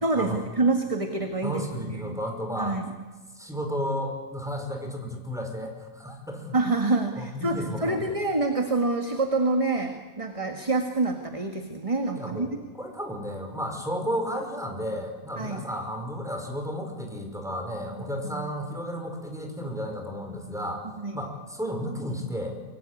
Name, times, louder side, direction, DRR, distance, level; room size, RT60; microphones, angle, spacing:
voice 1, 0.0-2.2 2.6-2.9 6.5-12.5 15.4-15.6 18.2-18.5 21.0-21.2, right 3 dB, 20° right, 5 dB, 1.7 m, -27 dB
voice 2, 1.4-2.8 3.3-6.6 7.2-8.1 12.1-12.5 12.7-20.8 21.1-22.5, equal, ahead, 3 dB, 5.0 m, -33 dB
24.0 x 24.0 x 9.8 m, 1.3 s
omnidirectional pair, 1.7 m